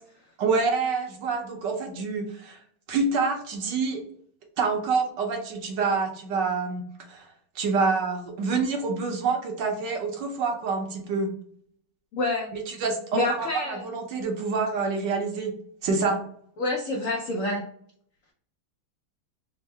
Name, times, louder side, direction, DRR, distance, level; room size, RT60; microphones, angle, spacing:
voice 1, 0.4-2.6 2.9-4.0 4.6-7.3 7.5-11.3 12.5-15.5 15.8-16.2, right 4 dB, 70° right, 3 dB, 1.2 m, -27 dB
voice 2, 12.1-12.5 13.1-13.8 16.6-17.6, left 2 dB, 80° left, -1 dB, 0.7 m, -27 dB
3.6 x 2.0 x 3.2 m, 0.62 s
omnidirectional pair, 2.1 m